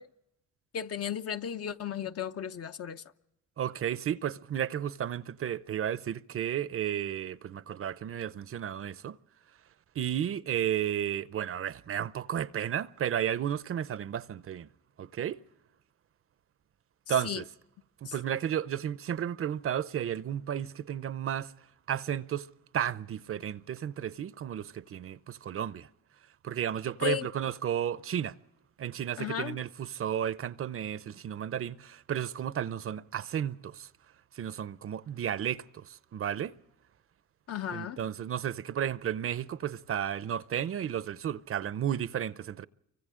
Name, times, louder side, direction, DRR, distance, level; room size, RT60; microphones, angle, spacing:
voice 1, 0.7-3.0 17.1-17.4 18.1-18.2 27.0-27.3 29.2-29.6 37.5-38.0, left 9 dB, 50° left, 0.8 m, -34 dB
voice 2, 3.6-9.2 9.9-14.7 15.0-15.4 17.1-17.4 18.0-21.5 21.9-22.5 22.7-25.9 26.4-28.4 28.8-33.9 34.3-36.6 37.7-42.7, right 9 dB, 45° right, 0.6 m, -33 dB
29.5 x 24.5 x 3.7 m
cardioid pair, 90°, 30 cm